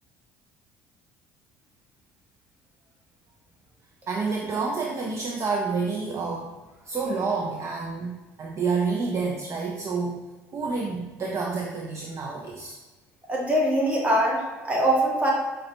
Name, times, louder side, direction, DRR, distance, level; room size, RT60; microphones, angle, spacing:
voice 1, 4.1-10.2 10.5-12.8, right 4 dB, 40° right, -1 dB, 0.5 m, -29 dB
voice 2, 13.3-15.3, right 1 dB, 20° right, -2 dB, 1.2 m, -23 dB
4.8 x 2.2 x 3.0 m, 1.2 s
hypercardioid pair, 65°, 7 cm